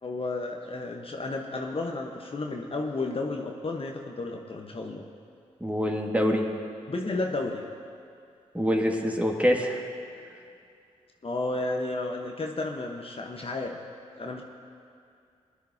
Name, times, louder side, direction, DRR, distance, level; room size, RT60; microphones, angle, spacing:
voice 1, 0.0-5.1 6.9-7.6 11.2-13.8 14.2-14.4, left 2 dB, 40° left, 1 dB, 1.2 m, -32 dB
voice 2, 5.6-6.5 8.5-9.8, equal, 10° right, 0 dB, 1.9 m, -25 dB
20.5 x 10.5 x 2.8 m, 2.4 s
supercardioid pair, 40°, 15 cm